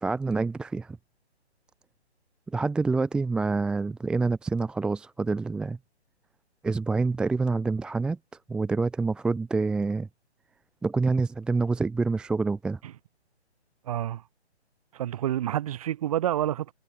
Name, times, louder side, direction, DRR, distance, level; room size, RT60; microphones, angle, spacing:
voice 1, 0.0-1.0 2.5-5.8 6.6-8.2 8.5-10.1 10.8-12.8, right 3 dB, ahead, 1.1 m, -27 dB
voice 2, 13.8-14.2 14.9-16.7, right 12 dB, 30° right, 4.0 m, -28 dB
figure-of-eight pair, 150°, 34 cm